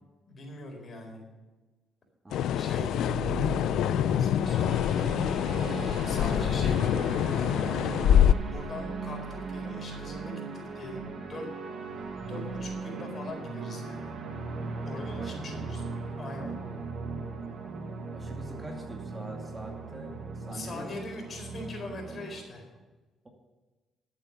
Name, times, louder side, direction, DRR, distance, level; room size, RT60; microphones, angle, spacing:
voice 1, 0.3-1.2 2.6-3.8 4.2-4.9 6.0-7.5 8.5-11.4 11.9-14.2 14.8-15.8 16.2-16.5 20.5-22.7, left 2 dB, 45° left, 1 dB, 4.3 m, -42 dB
voice 2, 2.2-2.7 15.2-15.8 18.1-21.1, right 1 dB, 20° right, 1 dB, 2.4 m, -44 dB
sound 1, 2.3-8.3, left 10 dB, 80° left, 0.5 m, -25 dB
sound 2, 3.1-22.4, right 4 dB, 60° right, 2.0 m, -38 dB
12.0 x 8.4 x 7.0 m, 1.2 s
cardioid pair, 90°, 0 cm